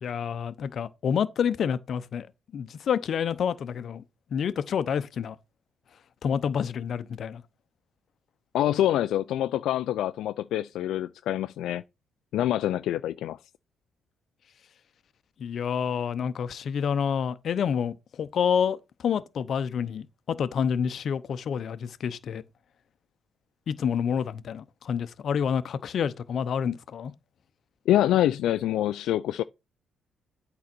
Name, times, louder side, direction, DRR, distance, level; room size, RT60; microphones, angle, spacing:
voice 1, 0.0-2.3 2.5-4.0 4.3-5.4 6.2-7.4 15.4-22.4 23.7-27.1, left 7 dB, 60° left, 0.8 m, -28 dB
voice 2, 8.5-11.8 12.3-13.4 27.9-29.4, left 12 dB, 85° left, 0.3 m, -25 dB
8.6 x 3.9 x 6.0 m
cardioid pair, 90°, 0 cm